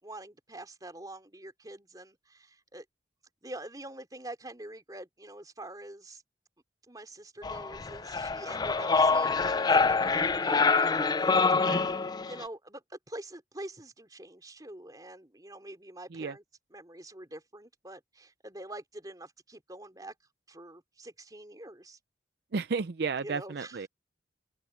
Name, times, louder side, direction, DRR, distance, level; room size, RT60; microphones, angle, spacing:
voice 1, 0.0-2.8 3.4-6.2 6.9-10.9 12.2-16.4 16.7-20.1 20.5-22.0 23.2-23.9, right 1 dB, 20° right, 3.5 m, -45 dB
sound 1, 7.4-12.4, left 4 dB, 20° left, 0.4 m, -26 dB
voice 2, 11.5-11.9 16.1-16.3 22.5-23.9, right 4 dB, 60° right, 0.5 m, -33 dB
open air
head